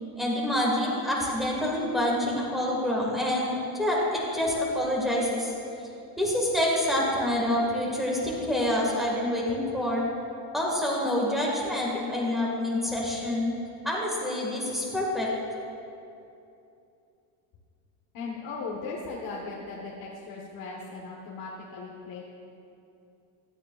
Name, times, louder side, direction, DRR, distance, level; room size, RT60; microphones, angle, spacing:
voice 1, 0.2-5.5 6.2-10.0 10.5-13.5 13.8-15.3, left 1 dB, ahead, -4 dB, 1.9 m, -27 dB
voice 2, 18.1-22.2, left 4 dB, 45° left, -3 dB, 1.3 m, -38 dB
16.0 x 12.5 x 2.5 m, 2.7 s
cardioid pair, 160°, 46 cm